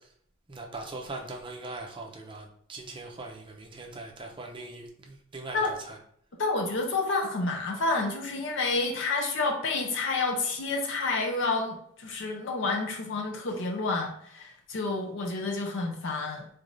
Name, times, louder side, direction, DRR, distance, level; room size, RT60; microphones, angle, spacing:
voice 1, 0.5-6.0, right 2 dB, 25° right, 1 dB, 0.5 m, -41 dB
voice 2, 6.4-16.5, left 3 dB, 60° left, 1 dB, 0.5 m, -29 dB
3.9 x 3.4 x 2.5 m, 0.65 s
head